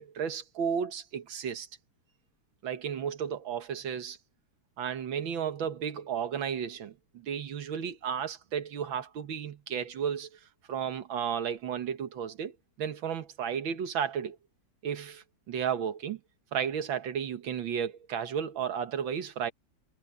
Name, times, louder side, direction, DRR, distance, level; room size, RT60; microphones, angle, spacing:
voice 1, 0.0-1.7 2.6-4.2 4.8-10.4 10.7-12.5 12.8-14.4 14.8-16.2 16.5-19.5, right 8 dB, 80° right, 2.1 m, -33 dB
omnidirectional pair, 2.1 m